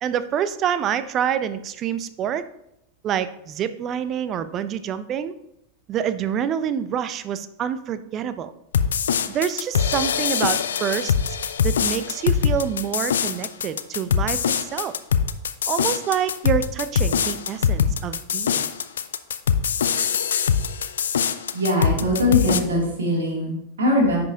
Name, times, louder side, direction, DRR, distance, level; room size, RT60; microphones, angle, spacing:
voice 1, 0.0-2.4 3.0-5.3 5.9-8.5 9.3-11.4 11.6-14.9 15.7-18.7, right 9 dB, 30° right, 13 dB, 0.5 m, -27 dB
sound 1, 8.7-22.6, left 7 dB, 65° left, 0.4 m, -23 dB
voice 2, 21.5-24.2, left 1 dB, 65° right, -2 dB, 2.6 m, -21 dB
10.0 x 5.1 x 2.8 m, 0.81 s
figure-of-eight pair, 90°, 0 cm